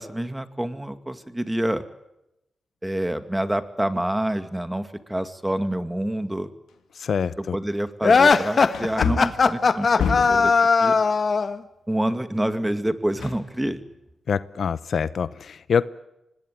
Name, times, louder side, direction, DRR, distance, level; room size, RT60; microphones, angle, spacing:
voice 1, 0.0-1.8 2.8-6.5 7.4-10.5 10.8-11.0 11.9-13.8, right 1 dB, 10° right, 10 dB, 2.2 m, -27 dB
Wood, 6.7-6.8 7.4-7.5 8.7-10.5 13.2-14.0 14.3-14.4, left 6 dB, 90° left, 2.9 m, -28 dB
voice 2, 7.0-7.5 14.3-15.8, left 6 dB, 70° left, 16 dB, 0.8 m, -25 dB
sound 1, 8.0-11.6, left 4 dB, 55° left, 1.5 m, -18 dB
25.0 x 20.0 x 9.3 m, 0.89 s
cardioid pair, 60°, 0 cm